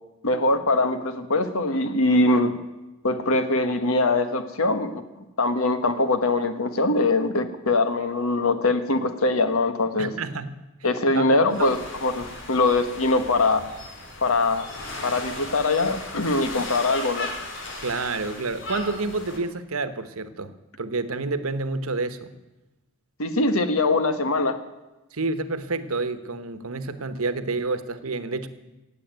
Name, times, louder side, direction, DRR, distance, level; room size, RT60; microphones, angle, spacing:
voice 1, 0.2-2.6 3.0-5.0 5.4-10.1 10.8-13.6 14.2-14.7 15.0-17.3 23.2-24.6, left 2 dB, 85° left, 10 dB, 1.4 m, -22 dB
voice 2, 10.0-10.6 11.1-11.7 17.8-22.3 25.1-28.5, right 3 dB, 85° right, 12 dB, 1.1 m, -29 dB
sound 1, 11.5-19.4, left 2 dB, 60° left, 3.0 m, -37 dB
16.5 x 8.4 x 9.2 m, 1.0 s
head